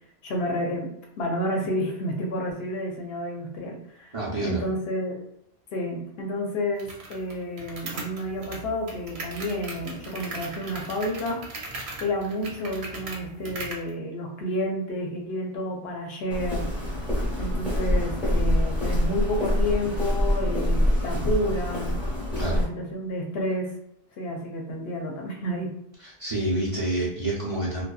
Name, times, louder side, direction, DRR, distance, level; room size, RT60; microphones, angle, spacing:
voice 1, 0.2-0.9 1.2-4.2 4.4-5.2 5.7-11.4 12.0-16.7 17.4-22.0 22.5-23.7 24.2-25.7, left 1 dB, 75° left, 1 dB, 0.8 m, -30 dB
voice 2, 4.1-4.6 22.4-22.6 26.0-27.8, right 1 dB, 40° right, -6 dB, 0.6 m, -28 dB
sound 1, 6.8-13.9, right 3 dB, 90° right, 0.9 m, -39 dB
Walk footsteps, 16.3-22.6, equal, ahead, 0.9 m, -25 dB
2.6 x 2.1 x 2.2 m, 0.75 s
omnidirectional pair, 1.1 m